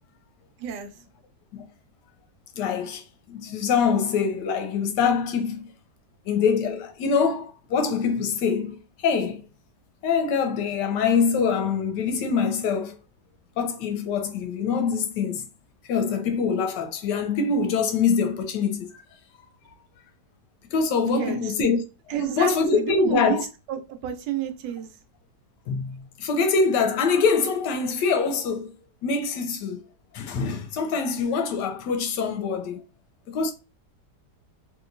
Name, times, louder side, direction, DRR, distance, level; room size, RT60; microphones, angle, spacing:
voice 1, 2.6-5.7 6.3-9.4 10.0-13.0 13.6-15.4 15.9-19.0 20.7-21.8 22.1-23.4 25.7-28.7 29.0-29.8 30.1-32.8 33.3-33.5, left 5 dB, 85° left, 1.2 m, -24 dB
voice 2, 21.1-21.4 22.1-24.9, right 9 dB, 85° right, 1.2 m, -30 dB
2.9 x 2.8 x 2.5 m
omnidirectional pair, 1.8 m